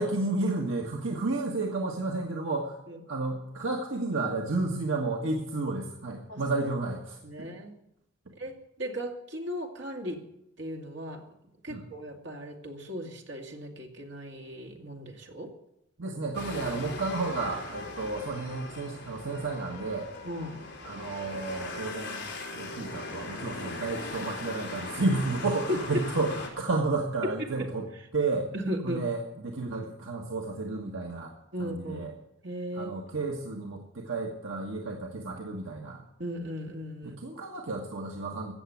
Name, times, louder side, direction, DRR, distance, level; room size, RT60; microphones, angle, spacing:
voice 1, 0.0-2.8 3.1-7.5 11.7-11.9 16.0-20.1 20.8-22.3 22.5-28.5 28.8-31.3 31.6-32.1 32.7-36.0 37.0-38.5, right 3 dB, 75° right, 0 dB, 1.6 m, -32 dB
voice 2, 7.2-7.7 8.4-10.2 10.6-11.2 11.6-15.5 20.2-20.6 25.9-26.0 28.5-29.0 31.5-32.1 32.4-32.9 36.2-37.2, equal, 60° right, 2 dB, 2.4 m, -37 dB
sound 1, 16.3-26.5, left 2 dB, 55° left, 4.1 m, -39 dB
16.0 x 7.4 x 9.3 m, 0.80 s
head